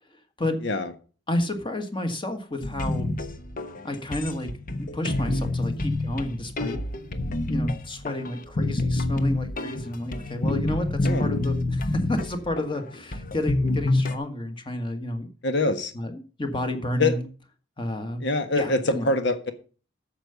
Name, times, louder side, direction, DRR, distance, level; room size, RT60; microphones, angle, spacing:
voice 1, 1.3-3.1 3.8-4.5 4.8-6.8 7.5-15.3 15.9-17.3 17.8-18.2 18.5-19.1, left 1 dB, 25° left, 7 dB, 1.5 m, -31 dB
sound 1, 2.6-14.2, left 2 dB, 45° left, 1.0 m, -28 dB
voice 2, 15.4-15.9 17.0-17.2 18.2-19.5, left 2 dB, 65° left, 9 dB, 1.4 m, -24 dB
8.7 x 6.9 x 6.8 m, 0.37 s
head